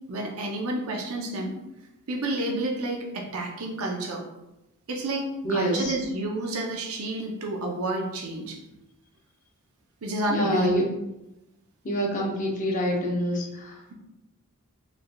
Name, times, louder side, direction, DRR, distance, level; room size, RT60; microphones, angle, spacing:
voice 1, 0.1-1.5 2.1-4.2 4.9-8.6 10.0-10.7, right 1 dB, 70° right, 0 dB, 0.6 m, -30 dB
voice 2, 5.4-5.9 10.3-10.8 11.8-13.8, equal, 35° left, -1 dB, 0.7 m, -26 dB
4.0 x 3.2 x 2.2 m, 0.95 s
head